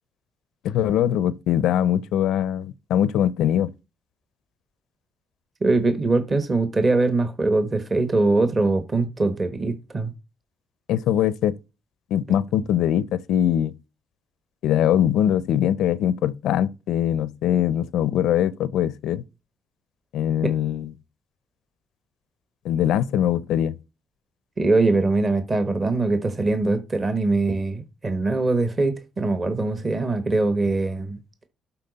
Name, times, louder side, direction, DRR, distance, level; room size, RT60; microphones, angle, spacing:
voice 1, 0.6-3.7 10.9-11.6 12.1-13.7 14.6-19.2 20.1-20.9 22.6-23.8, left 10 dB, 85° left, 0.4 m, -22 dB
voice 2, 5.6-10.1 20.4-20.5 24.6-31.2, right 3 dB, 30° right, 1.1 m, -22 dB
12.0 x 4.1 x 3.9 m
cardioid pair, 90°, 0 cm